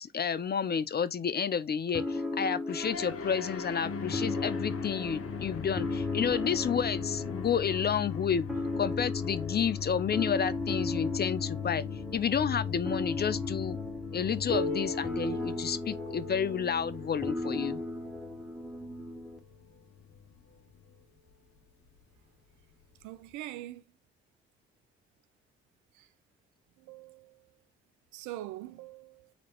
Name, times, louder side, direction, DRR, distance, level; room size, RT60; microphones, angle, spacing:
voice 1, 0.0-8.4 8.8-11.8 12.1-13.8 14.1-17.8, left 7 dB, 30° left, 0.5 m, -30 dB
sound 1, 1.9-19.4, left 2 dB, ahead, 1.1 m, -36 dB
sound 2, 2.7-21.0, left 7 dB, 50° left, 1.1 m, -40 dB
Piano, 14.5-19.8 20.7-20.8 21.3-21.4 22.2-22.3 23.3-23.4, left 2 dB, 80° left, 1.6 m, -41 dB
voice 2, 23.0-23.8 25.9-26.1 26.8-27.5 28.1-29.3, right 15 dB, 70° right, 0.5 m, -43 dB
4.2 x 2.9 x 4.3 m
hypercardioid pair, 45°, 31 cm